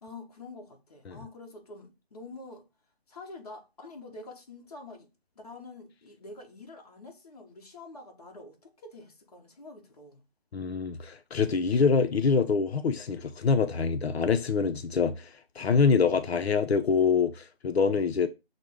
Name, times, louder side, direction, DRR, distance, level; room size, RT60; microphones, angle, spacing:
voice 1, 0.0-2.7 3.1-5.1 5.4-10.2, left 2 dB, 40° left, 0.9 m, -46 dB
voice 2, 10.5-15.3 15.6-18.3, left 5 dB, 80° left, 0.5 m, -25 dB
6.2 x 2.1 x 3.5 m
figure-of-eight pair, 165°, 31 cm